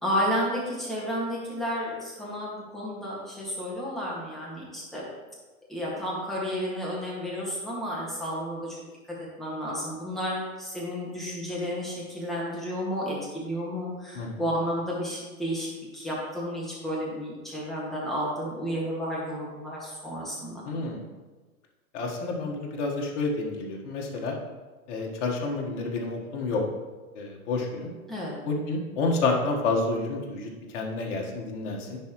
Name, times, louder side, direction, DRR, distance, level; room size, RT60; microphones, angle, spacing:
voice 1, 0.0-5.0 5.7-8.8 9.4-20.6 28.1-28.4, equal, ahead, -6 dB, 2.0 m, -32 dB
voice 2, 20.6-21.0 21.9-24.3 24.9-26.6 27.1-27.9 28.4-32.0, left 3 dB, 55° left, 0 dB, 1.6 m, -29 dB
10.5 x 4.5 x 3.1 m, 1.3 s
hypercardioid pair, 120°, 43 cm